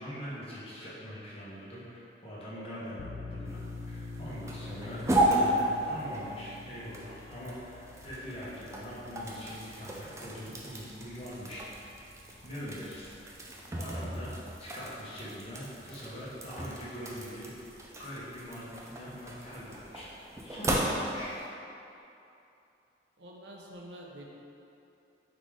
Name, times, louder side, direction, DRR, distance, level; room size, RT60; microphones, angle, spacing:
voice 1, 0.0-3.6 3.9-11.9 12.4-13.1 13.7-14.3 14.6-17.7 18.0-21.3, equal, 30° left, -8 dB, 0.9 m, -42 dB
sound 1, 3.0-14.3, left 3 dB, 90° left, 0.4 m, -47 dB
sound 2, 3.5-21.5, right 1 dB, 15° right, 0.3 m, -35 dB
voice 2, 23.2-24.3, right 1 dB, 75° right, -2 dB, 0.6 m, -47 dB
4.0 x 3.3 x 3.6 m, 2.8 s
head